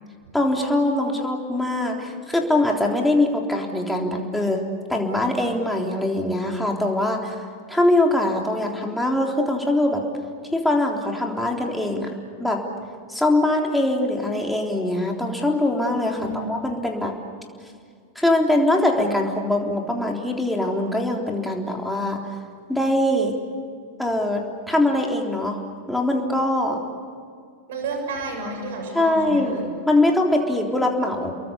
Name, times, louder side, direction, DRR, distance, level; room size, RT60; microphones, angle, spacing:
voice 1, 0.3-4.6 4.9-7.4 7.7-10.0 10.5-12.1 12.4-12.6 13.1-17.2 18.2-22.2 22.7-23.3 24.0-25.6 25.9-26.8 28.9-31.3, left 1 dB, ahead, 0 dB, 3.6 m, -22 dB
voice 2, 16.1-16.5 27.7-29.7, right 2 dB, 55° right, 4 dB, 7.0 m, -31 dB
30.0 x 22.5 x 8.4 m, 2.1 s
figure-of-eight pair, 90°, 0 cm